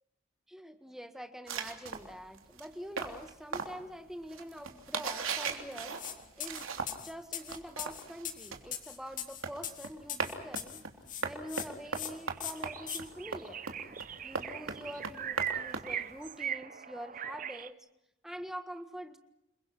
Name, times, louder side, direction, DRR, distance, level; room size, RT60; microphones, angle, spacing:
voice 1, 0.5-5.9 6.4-10.8 11.2-13.6 14.2-17.9 18.2-19.2, equal, ahead, 8 dB, 1.6 m, -45 dB
sound 1, 1.5-7.1 7.4-16.5, right 5 dB, 85° right, 3.3 m, -39 dB
sound 2, 6.0-6.1 6.4-10.8 11.1-11.7 11.9-12.1 12.4-13.0, left 10 dB, 40° left, 2.3 m, -40 dB
sound 3, 11.8-11.9 12.3-17.7, right 9 dB, 40° right, 0.8 m, -40 dB
28.0 x 23.0 x 6.1 m, 0.86 s
head